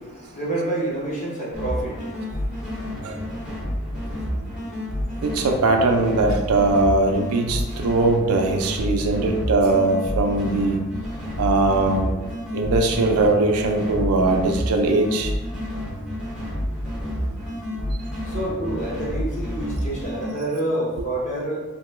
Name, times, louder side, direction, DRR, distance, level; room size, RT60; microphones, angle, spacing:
voice 1, 0.0-5.4 18.2-21.6, right 1 dB, 35° left, -5 dB, 0.8 m, -30 dB
sound 1, 1.5-20.3, equal, 5° right, 0.6 m, -30 dB
voice 2, 5.2-10.8 11.4-12.1 12.5-15.3, right 2 dB, 90° right, 3 dB, 0.4 m, -20 dB
2.9 x 2.2 x 3.1 m, 1.1 s
head